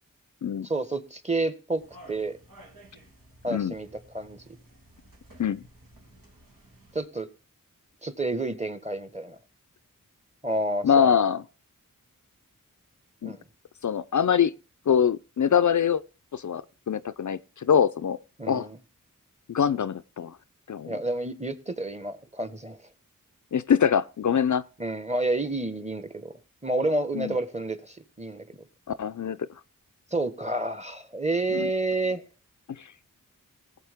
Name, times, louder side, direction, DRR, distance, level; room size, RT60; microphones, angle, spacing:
voice 1, 0.6-1.8 2.1-2.4 3.4-3.9 4.1-4.4 6.9-7.3 8.0-9.4 10.4-11.2 13.2-13.4 18.4-18.8 20.8-22.8 24.8-26.3 26.6-28.4 30.1-32.2, right 2 dB, 20° right, 1.4 m, -29 dB
sound 1, 1.7-7.1, right 1 dB, 75° right, 2.9 m, -53 dB
voice 2, 10.8-11.4 13.2-13.3 13.8-14.5 14.9-16.0 16.3-18.2 18.5-18.7 19.5-20.4 20.7-20.9 23.5-24.6 27.2-27.3 29.0-29.4 31.5-31.7 32.7-32.9, left 7 dB, 60° left, 0.5 m, -24 dB
18.0 x 7.4 x 3.6 m
cardioid pair, 40°, 34 cm